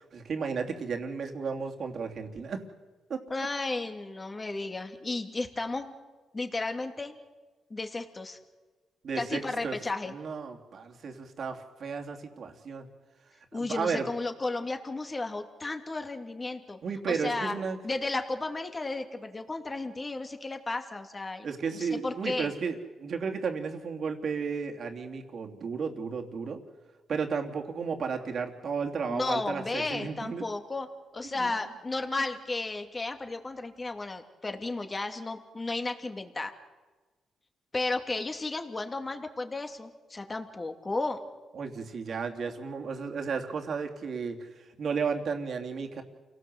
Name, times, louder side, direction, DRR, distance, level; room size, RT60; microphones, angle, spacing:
voice 1, 0.0-2.6 3.1-3.2 9.0-9.8 10.1-12.9 13.5-14.1 16.8-17.8 21.4-26.6 27.1-30.4 31.3-31.5 41.5-46.0, right 5 dB, 60° right, 3 dB, 3.1 m, -33 dB
voice 2, 3.3-5.9 6.3-7.2 7.7-8.4 9.1-10.1 13.5-16.8 17.1-17.6 17.8-22.5 29.1-30.9 31.1-36.5 37.7-41.2, left 3 dB, 25° left, 6 dB, 2.7 m, -33 dB
29.0 x 18.5 x 8.1 m, 1.3 s
cardioid pair, 80°, 0 cm